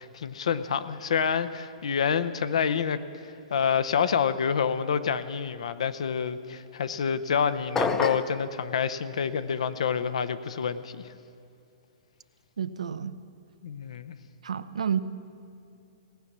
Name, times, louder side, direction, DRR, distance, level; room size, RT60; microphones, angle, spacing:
voice 1, 0.0-3.0 3.5-11.0 13.6-14.2, left 7 dB, 75° left, 13 dB, 0.6 m, -27 dB
sound 1, 7.8-8.4, left 4 dB, 15° left, 0.6 m, -27 dB
voice 2, 12.6-13.1 14.4-15.0, right 8 dB, 85° right, 13 dB, 0.6 m, -30 dB
18.0 x 6.0 x 8.4 m, 2.7 s
hypercardioid pair, 130°, 3 cm